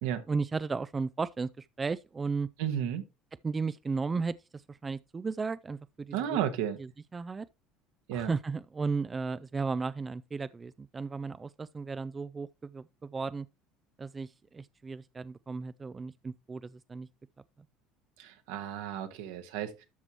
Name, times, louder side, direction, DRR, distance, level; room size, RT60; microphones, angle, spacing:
voice 1, 0.3-2.5 3.4-6.4 7.1-7.5 8.1-13.5 14.0-17.1, right 4 dB, 25° right, 0.4 m, -35 dB
voice 2, 2.6-3.0 6.1-6.8 8.1-8.3 18.2-19.9, right 10 dB, 75° right, 1.4 m, -33 dB
12.5 x 6.1 x 3.0 m
hypercardioid pair, 75°, 0 cm